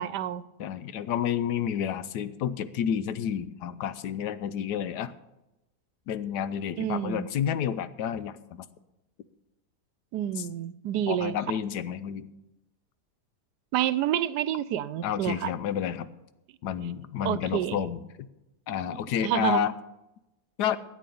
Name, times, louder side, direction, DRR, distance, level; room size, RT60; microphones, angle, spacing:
voice 1, 0.0-0.4 6.8-7.3 10.1-11.3 13.7-15.5 17.2-17.8 18.7-19.6, right 11 dB, 90° right, 16 dB, 1.2 m, -29 dB
voice 2, 0.6-5.1 6.1-8.7 10.4-10.5 11.1-12.3 15.0-16.1 16.6-18.0 18.7-19.7 20.6-20.8, left 9 dB, 80° left, 14 dB, 1.3 m, -30 dB
13.0 x 8.9 x 6.9 m, 0.94 s
omnidirectional pair, 1.7 m